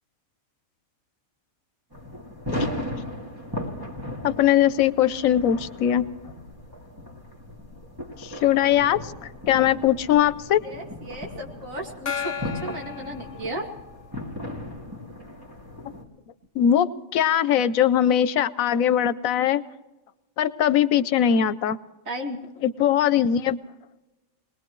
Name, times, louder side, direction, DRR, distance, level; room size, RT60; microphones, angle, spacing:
sound 1, 1.9-16.0, left 1 dB, 15° right, 2.3 m, -37 dB
voice 1, 4.2-6.0 8.2-9.0 9.5-10.6 16.6-19.6 20.4-21.8 22.6-23.6, left 10 dB, 85° left, 14 dB, 1.1 m, -21 dB
voice 2, 10.6-13.7 22.1-22.4, equal, 75° right, 1 dB, 2.7 m, -34 dB
Gong, 12.1-14.1, left 7 dB, 45° left, 0.7 m, -34 dB
21.0 x 20.5 x 3.1 m, 1.1 s
omnidirectional pair, 1.4 m